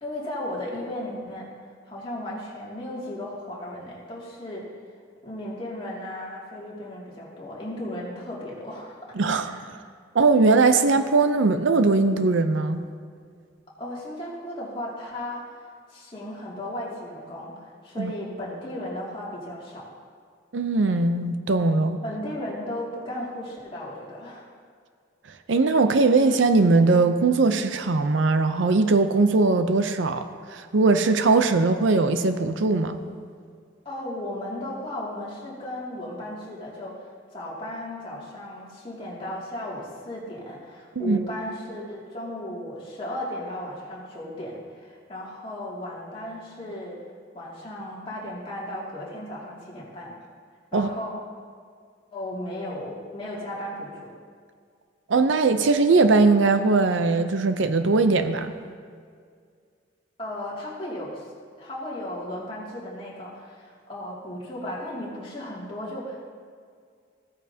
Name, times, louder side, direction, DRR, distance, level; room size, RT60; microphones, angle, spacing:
voice 1, 0.0-1.5 1.9-4.7 5.2-9.6 13.8-15.6 15.9-19.9 22.0-24.5 33.8-47.0 47.3-50.1 50.7-51.1 52.1-54.1 60.2-61.3 61.6-66.3, left 1 dB, 30° left, -6 dB, 2.4 m, -35 dB
voice 2, 9.2-9.5 10.1-12.8 18.0-18.1 20.5-22.0 25.5-33.0 41.0-41.2 50.7-50.9 55.1-58.5, right 3 dB, 80° right, 9 dB, 0.6 m, -20 dB
16.0 x 9.2 x 2.8 m, 2.1 s
head